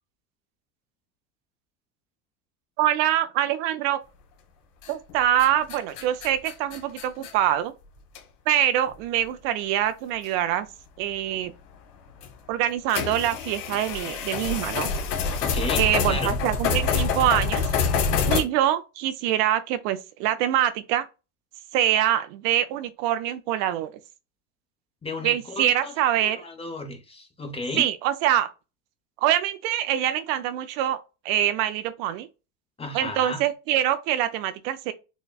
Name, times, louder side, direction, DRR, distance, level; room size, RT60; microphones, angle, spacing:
voice 1, 2.8-4.0 4.9-7.7 8.5-10.7 11.0-11.5 12.5-14.9 15.8-18.0 18.3-21.1 21.7-23.9 25.2-26.4 27.7-28.5 29.2-31.0 31.2-32.3 32.9-34.9, right 11 dB, 65° right, 0.6 m, -24 dB
sound 1, 4.8-5.1 5.4-7.3 8.2-8.3 8.9-9.0 10.3-10.4 12.2-12.3 12.9-18.4, left 5 dB, 85° left, 1.3 m, -26 dB
voice 2, 15.4-16.3 25.0-25.9 26.2-27.9 32.8-33.4, left 2 dB, 15° left, 0.8 m, -33 dB
6.2 x 2.2 x 2.3 m
supercardioid pair, 135°, 42 cm